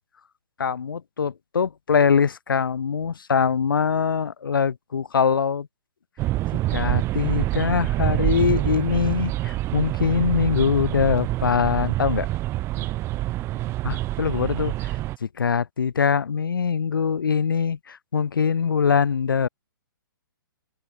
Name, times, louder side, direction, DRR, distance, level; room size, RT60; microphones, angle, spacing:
voice 1, 0.6-5.7 6.7-12.3 13.8-14.9 15.2-19.5, left 6 dB, 75° left, 6.2 m, -23 dB
sound 1, 6.2-15.2, right 16 dB, 25° right, 1.0 m, -26 dB
open air
hypercardioid pair, 135°, 11 cm